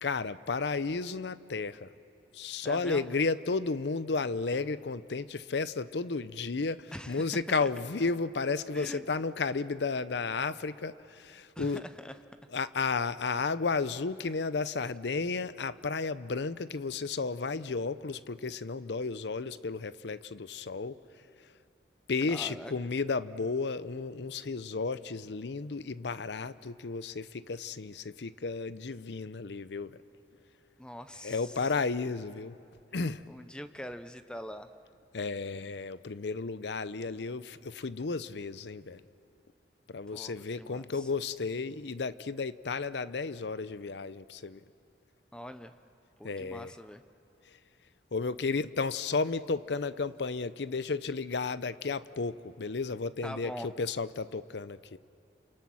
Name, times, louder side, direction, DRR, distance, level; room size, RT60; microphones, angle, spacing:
voice 1, 0.0-1.9 2.3-11.9 12.5-20.9 22.1-30.0 31.2-32.6 32.9-33.3 35.1-39.0 39.9-44.6 46.2-46.7 48.1-55.0, left 4 dB, 70° left, 15 dB, 0.6 m, -33 dB
voice 2, 2.6-3.1 6.9-7.3 7.6-7.7 8.7-9.0 11.6-12.2 22.3-22.7 30.8-31.7 33.3-34.7 40.1-41.1 45.3-45.7 46.2-47.0 53.2-53.7, equal, 5° left, 10 dB, 0.6 m, -43 dB
28.0 x 28.0 x 6.2 m, 2.5 s
head